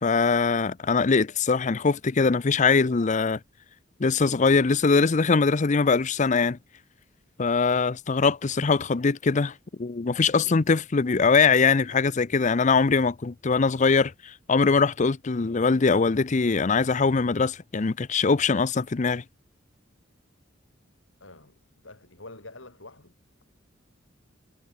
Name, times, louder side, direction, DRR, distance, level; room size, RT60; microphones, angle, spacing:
voice 1, 0.0-3.4 4.0-6.6 7.4-9.5 9.8-19.2, left 4 dB, 40° left, 0.6 m, -22 dB
voice 2, 21.2-23.4, left 2 dB, 70° left, 6.2 m, -47 dB
head